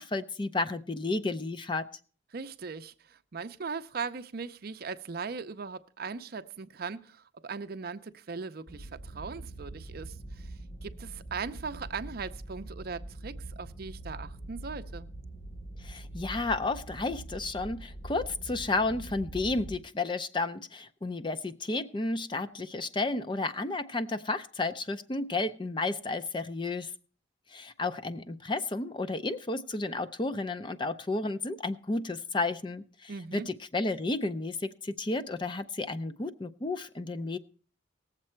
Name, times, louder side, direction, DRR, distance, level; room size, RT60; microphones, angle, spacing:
voice 1, 0.0-1.9 15.8-26.9 27.5-37.4, left 2 dB, 25° left, 0.5 m, -32 dB
voice 2, 2.3-10.5 10.8-15.1 33.1-33.5, right 5 dB, 55° right, 0.6 m, -39 dB
sound 1, 8.7-19.8, right 1 dB, 40° left, 1.3 m, -43 dB
18.5 x 7.4 x 4.4 m
head